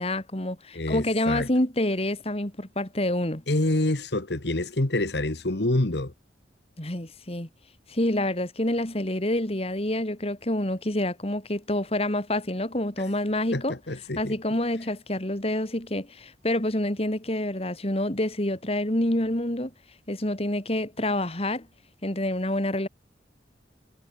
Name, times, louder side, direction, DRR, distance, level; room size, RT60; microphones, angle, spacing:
voice 1, 0.0-3.4 6.8-7.5 7.9-13.8 14.2-19.7 20.1-21.7 22.0-22.9, left 1 dB, 35° left, 2.8 m, -27 dB
voice 2, 0.7-1.5 3.5-6.1 13.5-14.3, left 1 dB, 65° left, 1.7 m, -27 dB
head